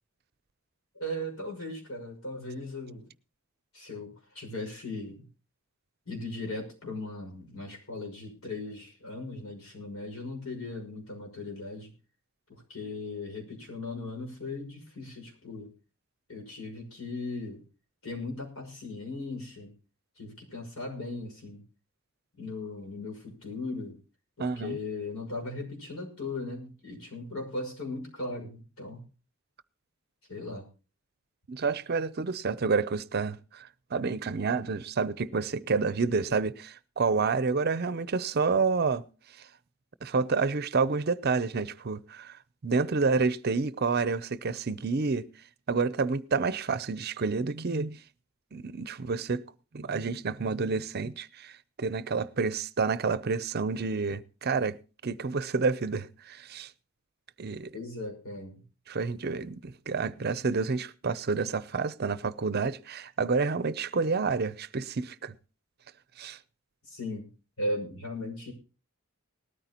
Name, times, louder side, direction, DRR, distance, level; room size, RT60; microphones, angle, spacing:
voice 1, 0.9-3.1 3.7-5.2 6.1-11.9 12.5-15.7 16.3-17.6 18.0-19.7 20.2-21.6 22.4-24.0 24.4-29.0 30.3-30.7 57.7-58.6 66.8-67.3 67.6-68.5, left 2 dB, 85° left, 5.9 m, -38 dB
voice 2, 24.4-24.8 31.5-39.0 40.0-42.4 42.6-45.3 45.7-48.0 48.5-49.4 49.7-54.8 55.0-56.7 57.4-57.7 58.9-65.3 66.2-66.4, right 4 dB, 50° right, 0.6 m, -29 dB
19.0 x 13.5 x 2.9 m
head